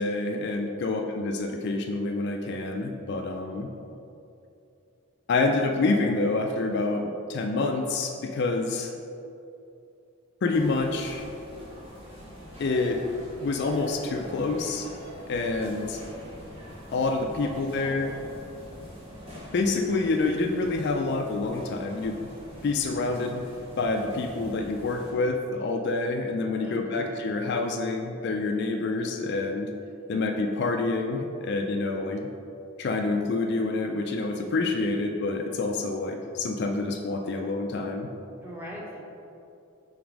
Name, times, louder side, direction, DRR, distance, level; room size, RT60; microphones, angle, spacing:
voice 1, 0.0-3.7 5.3-8.9 10.4-11.3 12.6-13.0 13.4-14.9 15.3-16.0 16.9-18.1 19.3-22.3 22.6-23.5 23.8-29.7 30.1-32.3 32.8-38.1, left 3 dB, 50° left, 3 dB, 0.3 m, -27 dB
voice 2, 3.4-3.9 17.4-18.3 26.6-27.1 30.1-30.4 38.4-39.0, equal, 10° right, -4 dB, 0.9 m, -42 dB
sound 1, 10.5-25.1, equal, 25° right, 1.2 m, -44 dB
4.7 x 3.9 x 5.1 m, 2.7 s
head